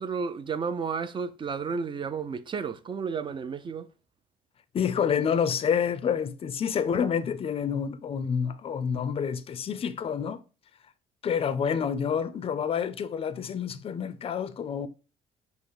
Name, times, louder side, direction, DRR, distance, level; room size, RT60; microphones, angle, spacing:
voice 1, 0.0-3.9, right 5 dB, 30° right, 0.4 m, -32 dB
voice 2, 4.7-10.4 11.2-14.9, left 7 dB, 35° left, 0.4 m, -28 dB
5.4 x 2.1 x 4.8 m
cardioid pair, 110°, 17 cm